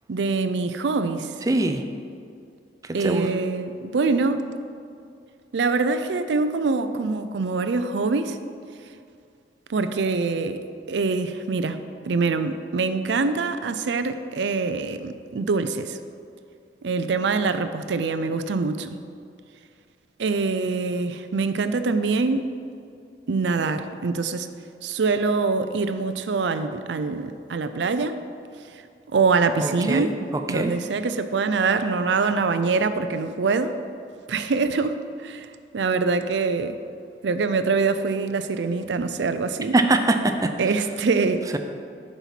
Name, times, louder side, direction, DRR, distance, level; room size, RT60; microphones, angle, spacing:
voice 1, 0.1-1.3 2.9-4.5 5.5-8.4 9.7-10.6 10.9-16.0 16.8-19.0 20.2-22.5 23.3-24.5 24.8-28.2 29.1-30.1 30.5-33.8 34.3-35.5 35.7-36.8 37.2-39.7 40.6-41.5, right 4 dB, 75° right, 10 dB, 0.5 m, -24 dB
voice 2, 1.5-1.8 2.8-3.3 29.6-30.7 39.7-40.5 41.5-41.6, right 2 dB, 20° right, 6 dB, 0.5 m, -23 dB
7.1 x 5.5 x 5.8 m, 2.4 s
head